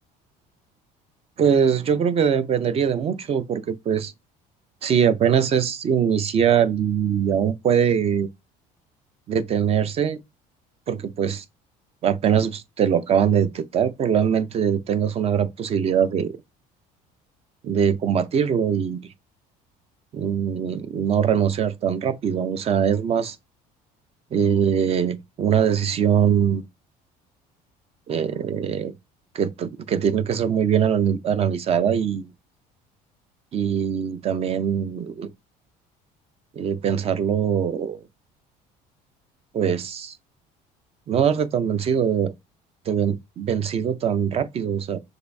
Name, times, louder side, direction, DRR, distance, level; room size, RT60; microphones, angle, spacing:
voice 1, 1.4-4.1 4.8-8.3 9.3-10.2 10.9-11.4 12.0-16.3 17.6-19.0 20.1-23.4 24.3-26.6 28.1-28.9 29.3-32.3 33.5-35.3 36.6-38.0 39.5-40.1 41.1-42.3 42.9-45.0, right 8 dB, 40° right, 0.6 m, -22 dB
6.6 x 2.5 x 2.7 m
cardioid pair, 120°, 16 cm